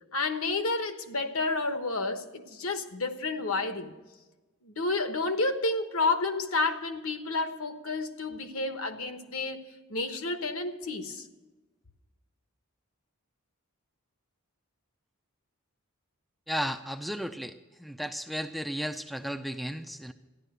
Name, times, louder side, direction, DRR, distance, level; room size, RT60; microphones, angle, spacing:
voice 1, 0.1-3.9 4.6-9.6 9.9-11.3, left 3 dB, 70° left, 7 dB, 1.2 m, -30 dB
voice 2, 16.5-20.1, equal, ahead, 7 dB, 0.4 m, -34 dB
14.0 x 11.0 x 6.7 m, 1.2 s
head